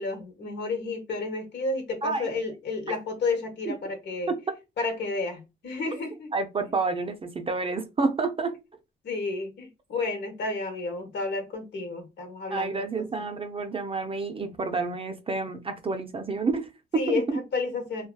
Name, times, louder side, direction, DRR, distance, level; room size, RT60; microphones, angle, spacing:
voice 1, 0.0-4.3 4.8-6.3 9.0-13.1 16.9-18.1, left 3 dB, 65° left, 1.1 m, -31 dB
voice 2, 2.0-2.3 3.7-3.8 4.3-4.4 6.3-8.6 12.5-17.4, right 3 dB, 30° right, 0.5 m, -29 dB
2.7 x 2.3 x 2.2 m
cardioid pair, 90°, 20 cm